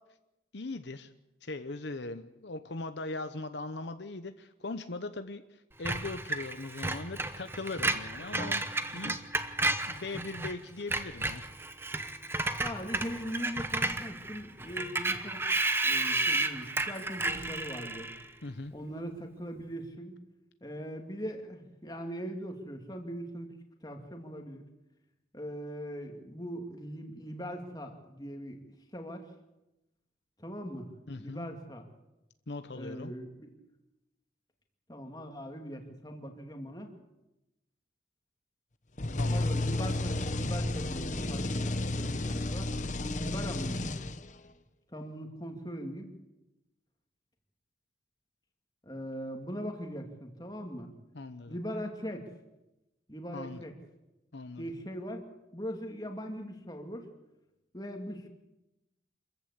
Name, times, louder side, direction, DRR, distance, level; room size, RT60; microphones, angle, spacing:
voice 1, 0.5-1.1 1.4-8.6 8.9-9.1 9.9-11.4 18.4-18.7 31.1-31.5 32.5-33.1 39.2-39.5 51.1-51.6 53.3-53.6 54.3-54.7, left 3 dB, 70° left, 9 dB, 0.9 m, -40 dB
Screech, 5.9-10.5 10.8-18.3, right 2 dB, 10° right, 0.9 m, -32 dB
voice 2, 12.6-15.4 15.8-18.1 18.7-20.2 20.6-23.5 23.8-24.6 25.3-28.6 28.9-29.3 30.4-30.9 31.2-31.9 32.7-33.5 34.9-36.9 39.3-42.7 43.2-43.9 44.9-46.1 48.9-50.9 51.5-52.3 53.1-53.7 54.6-55.2 55.5-57.1 57.7-58.3, equal, 20° left, 4 dB, 2.4 m, -40 dB
sound 1, 39.0-44.5, left 2 dB, 40° left, 1.1 m, -32 dB
26.5 x 14.5 x 8.3 m, 0.97 s
head